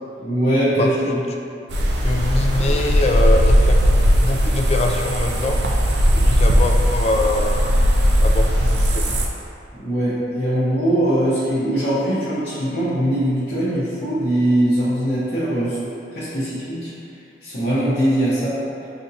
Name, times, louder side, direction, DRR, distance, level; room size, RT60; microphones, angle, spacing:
voice 1, 0.2-1.2 9.7-15.8 16.1-16.9 17.4-18.6, right 1 dB, 55° left, -12 dB, 0.8 m, -21 dB
voice 2, 0.8-1.2 2.0-3.8 4.2-5.6 6.1-7.7 8.2-9.1, left 2 dB, 35° left, 2 dB, 0.3 m, -23 dB
sound 1, 1.7-9.3, equal, 75° right, 0.4 m, -17 dB
5.6 x 2.5 x 2.7 m, 2.6 s
head